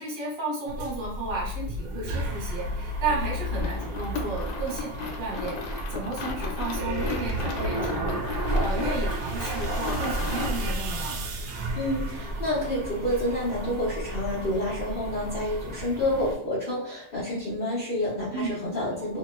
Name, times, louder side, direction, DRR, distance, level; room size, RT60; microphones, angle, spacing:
voice 1, 0.0-8.2 8.6-11.2 18.3-18.5, right 3 dB, 35° right, -5 dB, 1.0 m, -33 dB
sound 1, 0.7-16.3, right 1 dB, 75° right, 0.9 m, -32 dB
sound 2, 3.4-10.8, left 4 dB, 80° left, 1.3 m, -36 dB
voice 2, 11.7-19.2, left 1 dB, 60° left, -9 dB, 0.5 m, -29 dB
2.8 x 2.8 x 2.3 m, 0.71 s
omnidirectional pair, 2.1 m